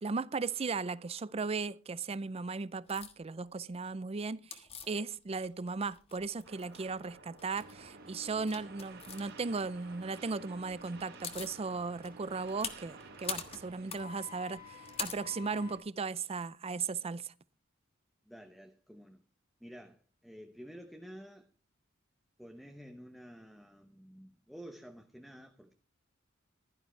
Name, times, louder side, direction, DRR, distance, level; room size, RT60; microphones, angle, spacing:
voice 1, 0.0-17.3, right 4 dB, 30° right, 0.5 m, -37 dB
sound 1, 2.9-3.1 4.5-5.6 5.9-6.8 7.4-7.7 8.4-9.2 10.7-10.8 11.0-11.6 12.0-15.8, left 6 dB, 30° left, 1.4 m, -43 dB
sound 2, 6.4-13.7, right 4 dB, 65° right, 4.5 m, -54 dB
sound 3, 7.6-15.8, right 2 dB, 50° right, 1.3 m, -55 dB
voice 2, 18.3-19.2 19.6-21.5 22.4-25.7, equal, ahead, 0.9 m, -51 dB
15.5 x 12.0 x 3.3 m
head